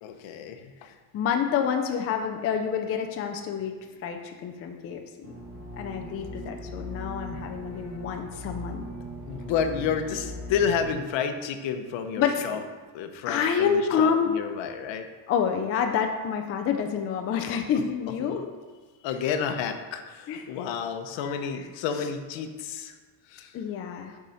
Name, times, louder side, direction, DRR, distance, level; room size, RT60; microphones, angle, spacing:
voice 1, 0.0-1.0 9.3-12.6 12.9-15.1 18.2-18.4 19.0-23.0 23.3-23.5, left 7 dB, 70° left, 7 dB, 0.8 m, -30 dB
voice 2, 1.1-5.3 5.8-8.8 12.2-12.4 13.2-14.3 15.3-18.5 20.3-20.5 21.2-21.5 23.5-24.2, left 7 dB, 30° left, 4 dB, 0.4 m, -28 dB
sound 1, 5.2-10.9, equal, 30° right, 1.2 m, -39 dB
6.6 x 4.8 x 5.6 m, 1.3 s
cardioid pair, 175°, 47 cm